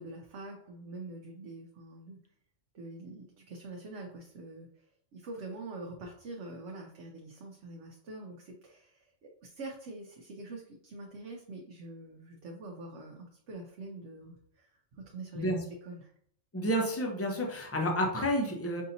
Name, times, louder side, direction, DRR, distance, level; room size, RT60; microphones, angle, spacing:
voice 1, 0.0-2.2 2.7-4.9 5.1-16.1, right 2 dB, 65° right, 0 dB, 0.9 m, -45 dB
voice 2, 16.5-18.8, equal, 20° left, 1 dB, 0.4 m, -30 dB
5.4 x 2.7 x 2.6 m, 0.63 s
omnidirectional pair, 1.3 m